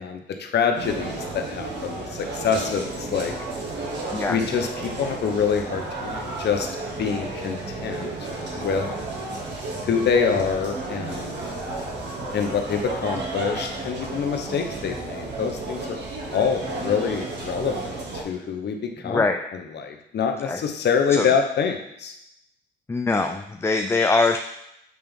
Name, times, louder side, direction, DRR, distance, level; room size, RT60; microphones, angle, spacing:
voice 1, 0.0-3.3 4.3-6.7 7.0-8.1 8.6-8.9 9.8-11.4 12.3-16.0 16.3-22.1, left 6 dB, 60° left, 4 dB, 0.9 m, -26 dB
sound 1, 0.7-18.2, right 2 dB, 65° right, 1.7 m, -32 dB
voice 2, 19.0-19.5 20.5-20.6 21.1-21.3 22.9-24.4, left 3 dB, 15° left, 5 dB, 0.3 m, -22 dB
7.7 x 3.5 x 3.5 m, 0.81 s
cardioid pair, 90°, 20 cm